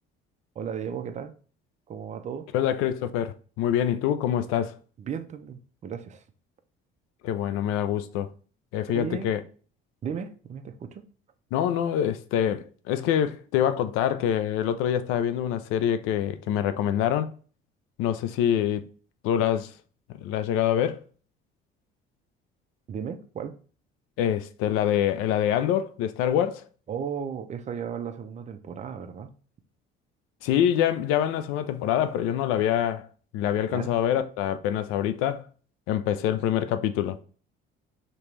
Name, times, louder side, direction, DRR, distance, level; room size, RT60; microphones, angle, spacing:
voice 1, 0.6-1.3 1.9-2.5 5.0-6.2 8.9-9.3 10.0-11.0 22.9-23.6 26.9-29.3 33.7-33.9, right 7 dB, 35° right, 0.6 m, -35 dB
voice 2, 2.5-4.8 7.2-8.3 8.7-9.4 11.5-17.3 18.0-18.9 19.2-19.7 20.2-21.0 24.2-26.6 30.4-33.1 33.3-35.5 35.9-37.2, left 10 dB, 90° left, 0.5 m, -25 dB
5.2 x 3.0 x 3.2 m
cardioid pair, 130°, 21 cm